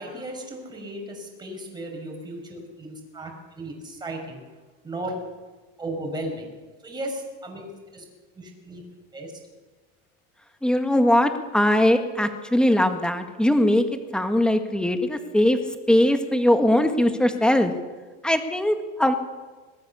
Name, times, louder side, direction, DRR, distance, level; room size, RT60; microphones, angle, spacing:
voice 1, 0.0-4.4 4.8-5.2 5.8-6.5 6.8-7.7 7.9-8.0 8.3-8.8 9.1-9.3, right 1 dB, 15° right, 1 dB, 5.6 m, -35 dB
voice 2, 10.6-15.6 15.9-17.7 18.2-19.1, left 1 dB, 5° left, 7 dB, 1.8 m, -20 dB
22.0 x 19.0 x 7.1 m, 1.3 s
cardioid pair, 140°, 30 cm